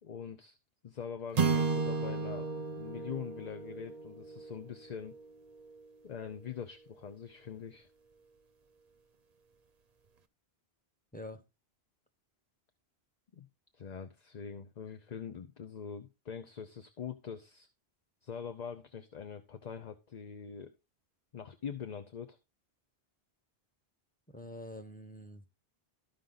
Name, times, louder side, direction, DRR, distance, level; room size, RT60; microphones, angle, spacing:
voice 1, 0.0-0.6 0.8-5.1 6.0-7.9 13.3-13.5 13.7-17.7 18.2-20.7 21.3-22.4, left 7 dB, 45° left, 0.8 m, -43 dB
sound 1, 1.4-5.8, right 5 dB, 45° right, 0.7 m, -34 dB
voice 2, 24.3-25.5, left 1 dB, 10° left, 1.0 m, -46 dB
13.0 x 5.2 x 3.9 m
omnidirectional pair, 1.0 m